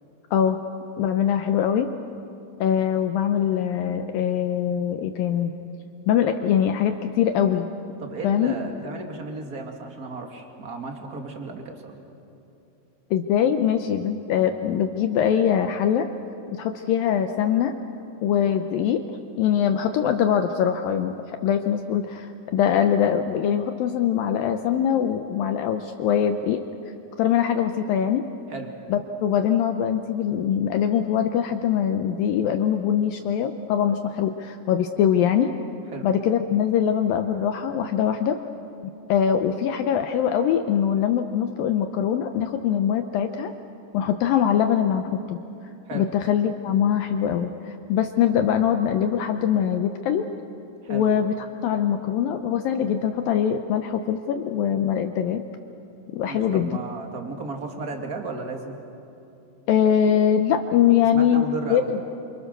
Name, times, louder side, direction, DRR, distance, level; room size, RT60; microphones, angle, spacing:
voice 1, 1.0-1.9 2.6-5.5 6.1-7.7 8.2-8.6 13.1-16.1 16.5-17.7 18.2-19.0 19.4-21.1 21.4-26.6 27.2-28.3 28.9-35.5 36.0-38.4 39.1-43.5 43.9-45.4 45.9-50.3 50.9-55.4 56.1-56.8 59.7-62.0, left 9 dB, 75° left, 6 dB, 2.1 m, -22 dB
voice 2, 8.0-12.0 28.5-28.7 35.9-36.1 45.9-46.1 50.8-51.1 56.3-58.7 61.1-61.9, right 3 dB, 35° right, 3 dB, 1.7 m, -34 dB
28.5 x 26.5 x 6.7 m, 2.8 s
omnidirectional pair, 4.9 m